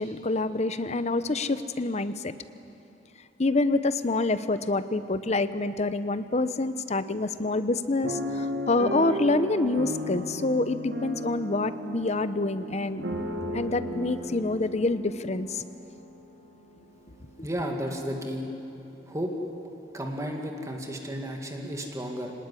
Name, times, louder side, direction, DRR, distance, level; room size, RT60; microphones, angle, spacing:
voice 1, 0.0-2.4 3.4-13.1 13.5-15.6 17.4-17.5, left 2 dB, 40° left, 12 dB, 0.8 m, -27 dB
sound 1, 8.0-16.1 16.7-16.8 17.1-17.4, equal, 70° right, 2.1 m, -35 dB
voice 2, 17.4-18.5 19.1-19.3 19.9-22.3, equal, 15° right, 2 dB, 2.2 m, -33 dB
24.5 x 19.0 x 9.9 m, 2.9 s
head